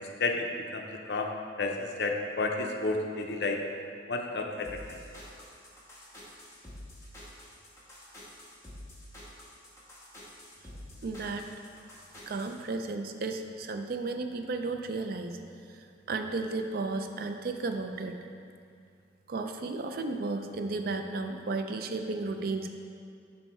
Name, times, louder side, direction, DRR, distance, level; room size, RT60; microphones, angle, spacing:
voice 1, 0.2-1.3 1.6-3.6 4.1-5.0, left 3 dB, 60° left, 3 dB, 0.6 m, -31 dB
sound 1, 4.6-12.6, left 1 dB, 15° left, 1.2 m, -48 dB
voice 2, 11.0-11.5 12.3-15.4 15.7-18.1 19.3-22.7, right 3 dB, 55° right, 6 dB, 0.4 m, -34 dB
6.2 x 4.2 x 4.3 m, 2.3 s
head